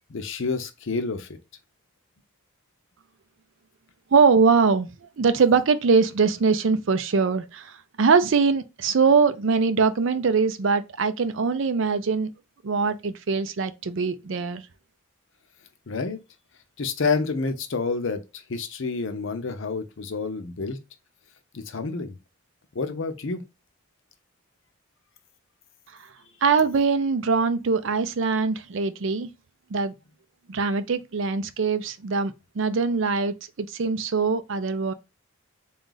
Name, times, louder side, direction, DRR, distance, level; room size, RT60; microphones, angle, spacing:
voice 1, 0.1-1.4 15.9-16.2 16.8-20.8 21.5-22.2 22.7-23.4, left 4 dB, 65° left, 0.6 m, -29 dB
voice 2, 4.1-4.9 5.2-12.3 12.6-14.7 26.4-29.3 29.7-29.9 30.5-34.9, right 5 dB, 65° right, 0.5 m, -22 dB
3.8 x 2.4 x 3.9 m
head